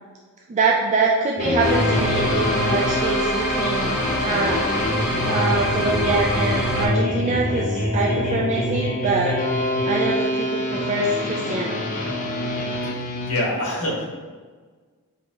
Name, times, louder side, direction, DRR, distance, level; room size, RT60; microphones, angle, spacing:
voice 1, 0.5-4.0 4.2-4.6 5.2-9.4 9.8-11.8, right 3 dB, 30° right, -2 dB, 0.3 m, -24 dB
sound 1, 1.4-13.3, left 1 dB, 35° left, 0.7 m, -25 dB
sound 2, 1.6-6.9, equal, 5° right, 1.0 m, -26 dB
voice 2, 13.3-14.0, left 1 dB, 80° left, -3 dB, 1.4 m, -24 dB
5.0 x 2.8 x 3.5 m, 1.5 s
head